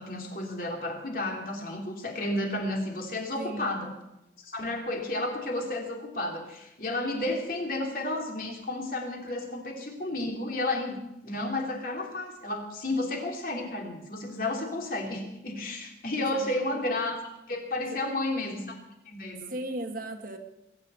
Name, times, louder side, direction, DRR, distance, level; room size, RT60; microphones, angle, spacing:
voice 1, 0.0-3.9 4.4-11.0 11.2-17.2 17.5-18.8 19.0-19.5, left 2 dB, 50° left, 0 dB, 3.5 m, -32 dB
voice 2, 3.4-3.7 16.2-16.9 17.8-18.0 19.5-20.4, right 1 dB, 50° right, 5 dB, 1.5 m, -37 dB
20.5 x 7.1 x 9.5 m, 0.92 s
head